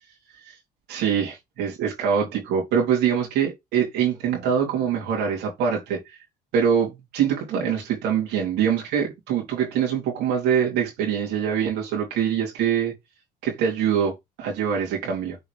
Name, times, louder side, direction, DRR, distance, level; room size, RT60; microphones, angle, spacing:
voice 1, 0.9-6.2 6.5-12.9 13.4-15.4, right 8 dB, 90° right, 3.2 m, -24 dB
6.8 x 4.8 x 3.3 m
cardioid pair, 110°, 17 cm